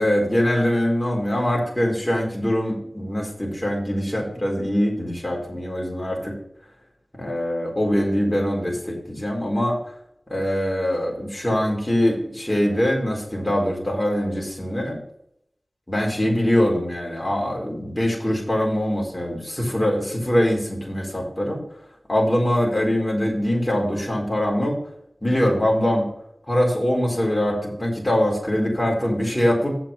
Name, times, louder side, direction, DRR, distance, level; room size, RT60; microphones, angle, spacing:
voice 1, 0.0-6.3 7.2-9.8 10.3-15.0 15.9-21.6 22.1-24.8 25.2-26.1 26.5-29.8, equal, 25° left, -2 dB, 4.2 m, -23 dB
7.9 x 5.9 x 7.3 m, 0.72 s
wide cardioid pair, 45°, 0 cm